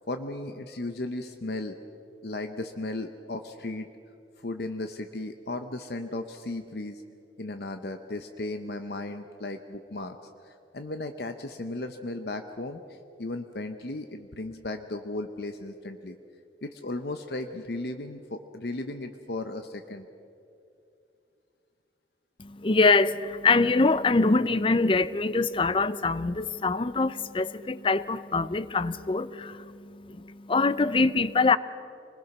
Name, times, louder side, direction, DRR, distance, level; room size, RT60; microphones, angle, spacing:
voice 1, 0.1-1.8 2.2-3.9 4.4-7.0 7.4-10.2 10.4-16.2 16.6-20.1, left 2 dB, 60° left, 7 dB, 0.8 m, -35 dB
voice 2, 22.4-31.6, left 3 dB, 30° left, 15 dB, 0.5 m, -24 dB
26.0 x 20.5 x 6.1 m, 2.6 s
head